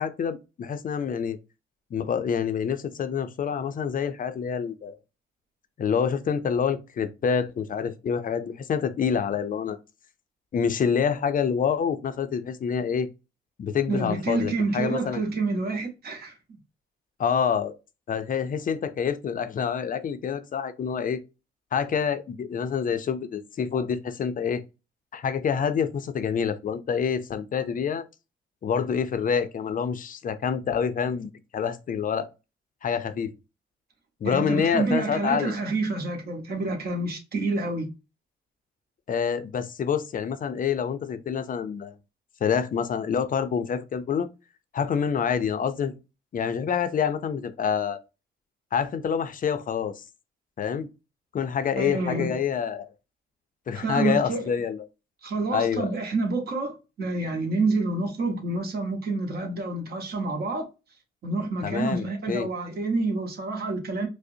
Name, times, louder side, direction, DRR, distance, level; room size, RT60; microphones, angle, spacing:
voice 1, 0.0-1.4 1.9-4.9 5.8-9.8 10.5-13.1 13.6-15.2 17.2-17.7 18.1-21.2 21.7-24.6 25.1-28.0 28.6-32.3 32.8-33.3 34.2-35.5 39.1-41.9 42.4-44.3 44.7-45.9 46.3-48.0 48.7-50.0 50.6-50.9 51.3-52.9 53.7-54.8 55.5-55.9 61.6-62.5, left 7 dB, 45° left, 0.5 m, -27 dB
voice 2, 13.9-16.4 34.2-37.9 51.8-52.4 53.8-54.4 55.2-60.7 61.2-64.1, right 3 dB, 50° right, 1.2 m, -28 dB
4.8 x 2.1 x 2.7 m
cardioid pair, 90°, 20 cm